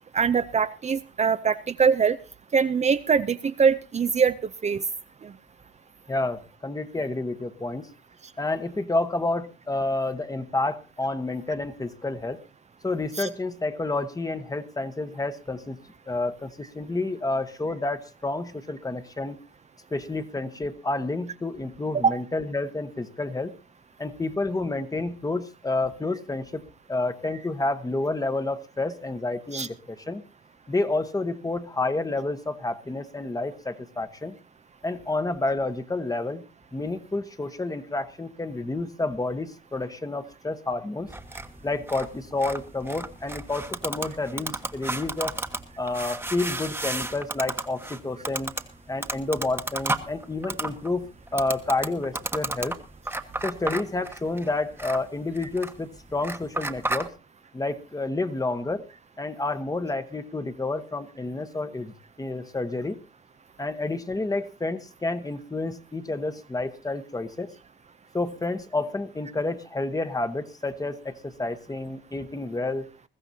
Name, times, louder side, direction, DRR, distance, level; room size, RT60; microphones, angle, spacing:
voice 1, 0.1-2.2 2.5-4.8 5.2-5.3 13.2-13.3 22.0-22.2 29.5-29.7, right 6 dB, 35° right, 11 dB, 0.6 m, -23 dB
voice 2, 6.1-7.9 8.4-12.4 12.8-15.8 16.1-19.4 19.9-23.5 24.0-26.6 26.9-30.2 30.7-34.3 34.8-36.4 36.7-41.1 41.6-45.3 45.8-48.5 48.9-52.8 53.4-57.1 57.5-58.8 59.2-63.0 63.6-67.5 68.1-72.8, left 2 dB, 20° left, 10 dB, 1.3 m, -29 dB
sound 1, 41.1-57.1, right 2 dB, 10° right, 1.3 m, -34 dB
21.0 x 14.5 x 2.8 m, 0.32 s
cardioid pair, 90°, 20 cm